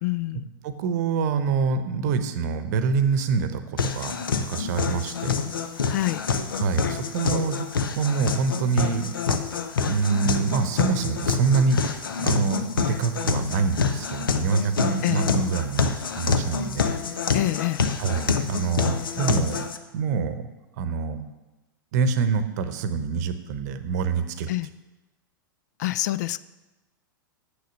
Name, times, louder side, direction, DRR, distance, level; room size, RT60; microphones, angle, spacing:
voice 1, 0.0-0.5 5.9-6.3 15.0-15.4 17.3-17.9 24.5-24.7 25.8-26.4, left 16 dB, 50° left, 17 dB, 0.3 m, -26 dB
voice 2, 0.6-4.2 4.5-5.4 6.6-7.6 8.0-9.1 9.9-17.0 18.0-19.6 19.9-20.5 20.8-21.2 21.9-24.5, right 5 dB, 50° right, 10 dB, 0.8 m, -25 dB
sound 1, 3.8-19.8, left 5 dB, 75° left, 0.7 m, -27 dB
7.7 x 6.6 x 6.4 m, 1.1 s
figure-of-eight pair, 100°, 11 cm